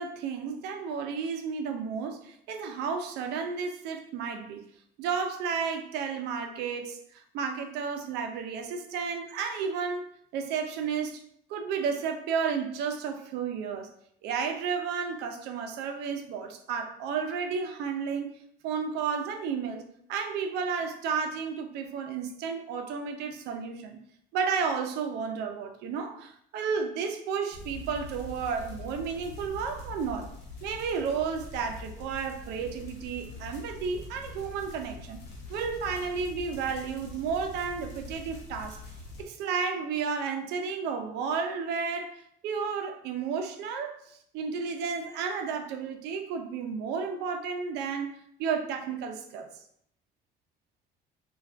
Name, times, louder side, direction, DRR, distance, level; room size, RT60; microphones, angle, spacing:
voice 1, 0.0-4.6 5.0-10.1 10.3-11.2 11.5-13.9 14.2-18.3 18.6-19.8 20.1-24.0 24.3-30.3 30.6-35.2 35.5-38.8 39.2-48.1 48.4-49.5, right 6 dB, 85° right, 6 dB, 0.4 m, -32 dB
sound 1, 27.5-39.2, left 3 dB, 85° left, 0.9 m, -44 dB
3.2 x 2.3 x 2.4 m, 0.69 s
cardioid pair, 110°, 17 cm